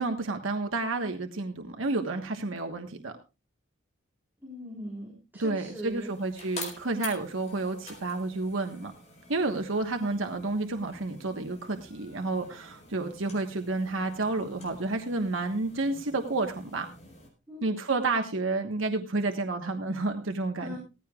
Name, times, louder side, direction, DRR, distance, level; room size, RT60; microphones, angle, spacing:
voice 1, 0.0-3.1 5.4-8.9 9.3-16.9 17.6-20.8, right 3 dB, 90° right, 5 dB, 1.3 m, -30 dB
voice 2, 4.4-6.1 17.5-17.7 20.6-20.8, equal, 10° right, -3 dB, 4.1 m, -40 dB
sound 1, 5.6-17.3, left 3 dB, 35° left, 4.5 m, -47 dB
17.5 x 15.0 x 2.4 m, 0.30 s
head